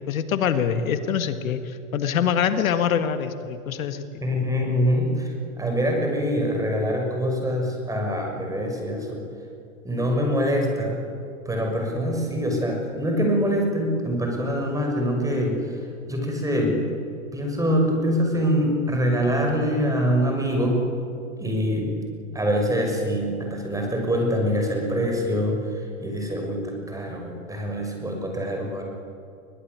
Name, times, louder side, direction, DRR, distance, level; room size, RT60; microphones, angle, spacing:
voice 1, 0.0-4.0, left 8 dB, 75° left, 10 dB, 1.9 m, -24 dB
voice 2, 4.2-9.2 9.8-11.0 11.4-16.9 17.3-20.9 21.4-22.0 22.3-28.8, equal, 10° right, 2 dB, 6.3 m, -24 dB
22.0 x 21.5 x 9.6 m, 2.5 s
hypercardioid pair, 120°, 42 cm